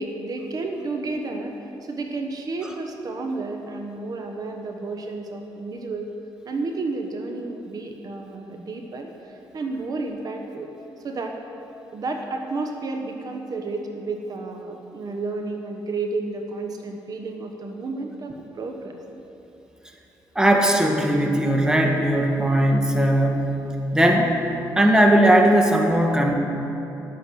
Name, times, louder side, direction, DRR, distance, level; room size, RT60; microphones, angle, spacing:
voice 1, 0.0-6.1 6.4-10.7 11.0-11.4 11.9-19.0, right 3 dB, 50° right, 3 dB, 1.1 m, -31 dB
voice 2, 20.3-24.4 24.7-26.3, right 1 dB, 10° right, 2 dB, 1.3 m, -18 dB
11.0 x 8.4 x 6.2 m, 2.9 s
cardioid pair, 90°, 8 cm